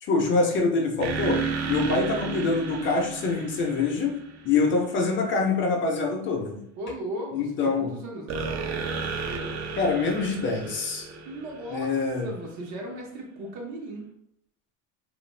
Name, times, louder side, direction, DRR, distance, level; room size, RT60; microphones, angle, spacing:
voice 1, 0.0-4.2 4.4-6.6 7.3-7.9 9.7-11.1 11.7-12.3, left 4 dB, 35° left, 2 dB, 0.5 m, -25 dB
sound 1, 1.0-4.7 8.3-12.2, right 5 dB, 50° right, 0.4 m, -32 dB
voice 2, 6.8-9.0 11.3-11.9 12.2-14.0, right 1 dB, 80° right, -1 dB, 1.0 m, -37 dB
2.5 x 2.3 x 3.1 m, 0.74 s
cardioid pair, 130°, 35 cm